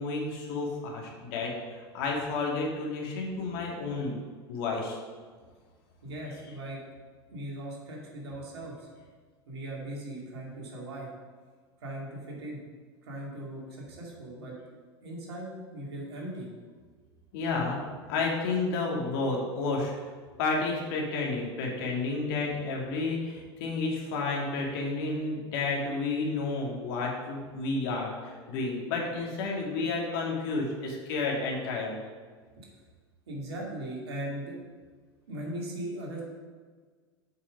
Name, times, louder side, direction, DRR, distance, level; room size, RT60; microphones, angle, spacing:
voice 1, 0.0-1.5 1.9-4.1 4.5-5.0 17.3-19.9 20.4-32.0, left 3 dB, 60° left, -1 dB, 2.2 m, -31 dB
voice 2, 6.0-6.8 7.3-8.9 9.5-11.1 11.8-12.6 13.1-14.5 15.0-16.5 33.3-34.6 35.3-36.2, right 1 dB, 75° right, -3 dB, 2.5 m, -38 dB
7.8 x 5.6 x 5.2 m, 1.5 s
figure-of-eight pair, 80°, 14 cm